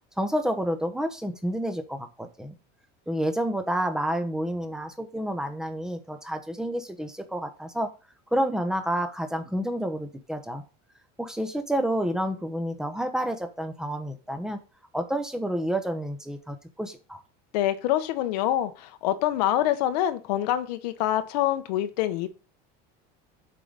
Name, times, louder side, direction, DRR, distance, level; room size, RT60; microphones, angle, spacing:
voice 1, 0.2-2.5 3.1-7.9 8.3-10.6 11.2-14.6 14.9-17.2, equal, 5° right, 7 dB, 1.0 m, -29 dB
voice 2, 17.5-22.3, left 12 dB, 90° left, 9 dB, 1.0 m, -26 dB
7.7 x 5.0 x 4.0 m, 0.33 s
cardioid pair, 140°, 20 cm